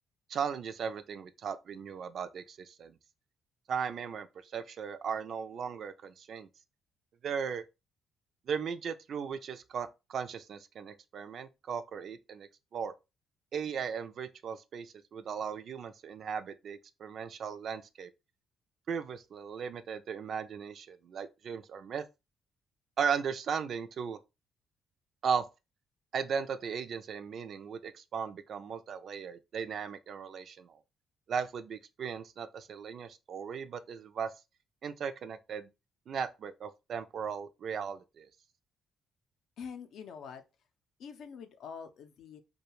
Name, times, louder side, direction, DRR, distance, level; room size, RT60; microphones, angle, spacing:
voice 1, 0.3-2.9 3.7-6.5 7.2-7.6 8.5-12.9 13.5-18.1 18.9-22.0 23.0-24.2 25.2-25.4 26.1-30.8 31.3-34.3 34.8-35.7 36.1-38.3, right 6 dB, 60° right, 0.3 m, -37 dB
voice 2, 39.6-40.4 41.0-42.4, left 6 dB, 70° left, 0.4 m, -45 dB
2.3 x 2.2 x 3.0 m
cardioid pair, 90°, 0 cm